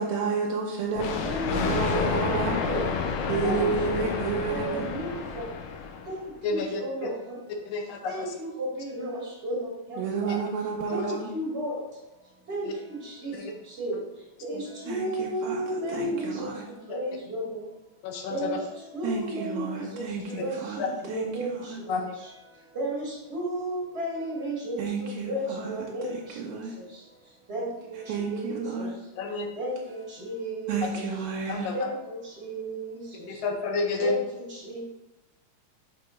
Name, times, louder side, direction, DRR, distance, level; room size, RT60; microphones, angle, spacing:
voice 1, 0.0-1.1 1.5-2.5 3.3-4.9 10.0-11.3 14.9-15.6 15.9-16.6 19.0-21.8 24.8-25.7 26.1-26.7 28.1-28.9 30.7-31.7, right 5 dB, 80° right, -1 dB, 1.8 m, -31 dB
voice 2, 0.9-2.8 3.4-4.2 4.5-5.4 6.1-6.2 6.5-7.4 8.1-10.4 10.9-11.8 12.5-13.3 13.8-13.9 14.4-16.5 16.9-17.7 18.3-18.6 18.9-22.1 22.7-26.1 26.4-26.6 27.5-28.9 29.6-31.0 31.7-33.0 34.0-34.8, right 1 dB, 40° right, -5 dB, 1.0 m, -33 dB
Thunder, 1.0-6.3, left 6 dB, 85° left, 1.3 m, -30 dB
voice 3, 6.4-6.8 7.7-8.3 10.3-10.4 10.9-11.1 12.6-12.7 13.4-13.5 14.5-14.6 18.0-18.5 21.9-22.0 29.2-29.5 31.5-31.7 33.3-34.2, left 4 dB, 70° left, 3 dB, 1.7 m, -30 dB
6.7 x 3.1 x 4.8 m, 0.98 s
omnidirectional pair, 3.4 m